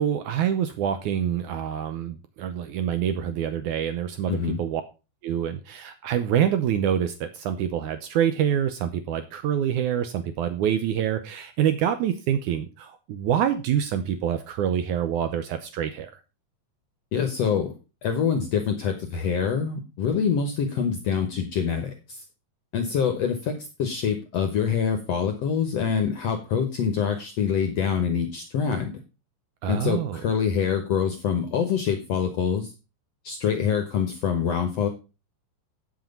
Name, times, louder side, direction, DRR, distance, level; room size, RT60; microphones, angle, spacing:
voice 1, 0.0-4.8 5.2-16.2 29.6-30.2, right 9 dB, 85° right, 9 dB, 1.7 m, -26 dB
voice 2, 4.3-4.6 17.1-17.7 18.0-21.9 22.7-28.9 29.7-32.7 33.2-34.9, left 7 dB, 75° left, 7 dB, 1.5 m, -25 dB
9.1 x 7.6 x 5.3 m, 0.30 s
omnidirectional pair, 4.5 m